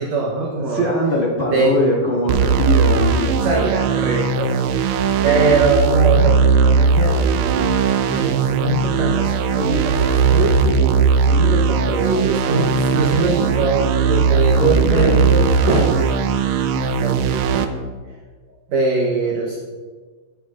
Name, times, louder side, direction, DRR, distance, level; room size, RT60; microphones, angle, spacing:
voice 1, 0.0-0.9 1.4-1.9 3.4-4.6 5.2-16.1 16.7-17.7 18.7-19.6, right 3 dB, 65° right, -2 dB, 1.8 m, -22 dB
voice 2, 0.7-3.6 14.5-15.1, left 1 dB, 40° left, -5 dB, 0.8 m, -21 dB
sound 1, 2.3-17.7, right 5 dB, 80° right, 2.2 m, -18 dB
21.0 x 7.7 x 2.5 m, 1.5 s
omnidirectional pair, 4.3 m